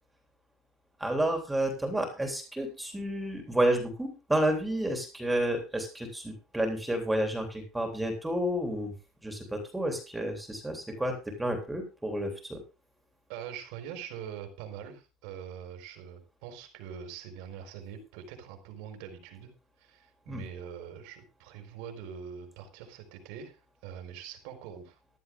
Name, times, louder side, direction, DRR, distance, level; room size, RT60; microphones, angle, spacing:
voice 1, 1.0-8.9 9.2-12.6 20.3-20.4, right 1 dB, 5° right, 4 dB, 3.3 m, -30 dB
voice 2, 13.3-19.5 19.8-25.0, right 8 dB, 80° right, 6 dB, 4.4 m, -43 dB
15.5 x 11.0 x 3.6 m, 0.30 s
cardioid pair, 140°, 0 cm